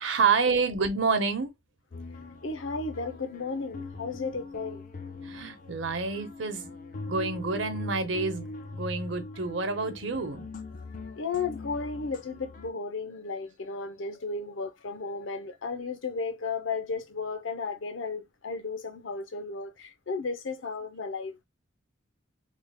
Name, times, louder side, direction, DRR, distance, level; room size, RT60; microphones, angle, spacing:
voice 1, 0.0-1.5 5.2-10.5, right 4 dB, 70° right, 0.8 m, -28 dB
sound 1, 1.9-12.7, left 3 dB, 45° left, 0.5 m, -41 dB
voice 2, 2.4-4.9 11.0-21.4, left 4 dB, 85° left, 0.7 m, -34 dB
3.3 x 3.3 x 2.2 m
head